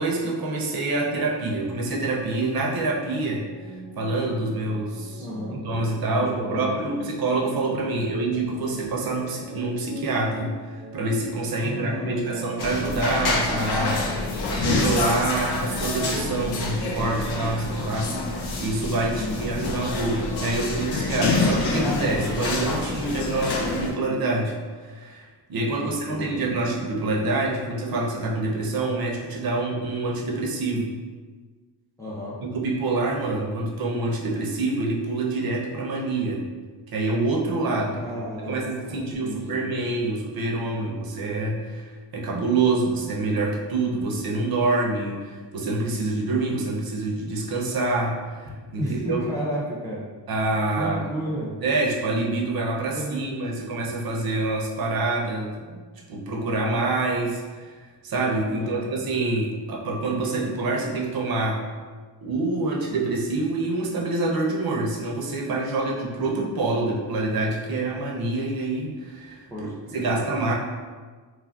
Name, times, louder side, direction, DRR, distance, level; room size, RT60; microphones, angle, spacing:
voice 1, 0.0-3.5 4.0-5.3 5.5-31.0 32.4-36.5 36.9-49.2 50.3-51.0 51.6-55.5 56.1-57.8 58.0-61.6 62.2-70.5, right 2 dB, 55° right, -2 dB, 0.5 m, -26 dB
sound 1, 1.1-17.4, left 1 dB, 30° left, 0.9 m, -41 dB
voice 2, 5.2-5.9 6.2-6.7 7.9-8.2 11.5-12.6 19.1-19.7 25.8-26.4 32.0-32.4 38.0-38.6 38.9-39.7 48.8-50.0 50.8-51.5 52.8-53.6 58.5-58.9 69.5-70.2, equal, 10° left, -6 dB, 0.4 m, -33 dB
sound 2, 12.6-23.9, left 2 dB, 65° left, 0.5 m, -27 dB
3.0 x 2.4 x 2.2 m, 1.4 s
wide cardioid pair, 140°, 43 cm